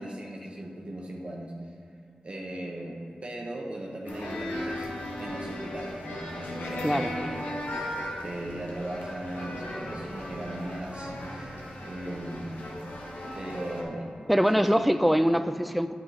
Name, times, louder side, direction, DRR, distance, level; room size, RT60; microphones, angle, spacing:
voice 1, 0.0-1.5 2.2-4.9 5.2-7.5 8.2-12.5 13.2-14.1 14.5-14.8, right 1 dB, 40° right, 0 dB, 1.1 m, -38 dB
sound 1, 4.1-13.8, left 1 dB, 85° left, 1.3 m, -36 dB
voice 2, 14.3-15.9, equal, ahead, 10 dB, 0.3 m, -23 dB
8.6 x 7.4 x 4.1 m, 2.4 s
wide cardioid pair, 75°, 3 cm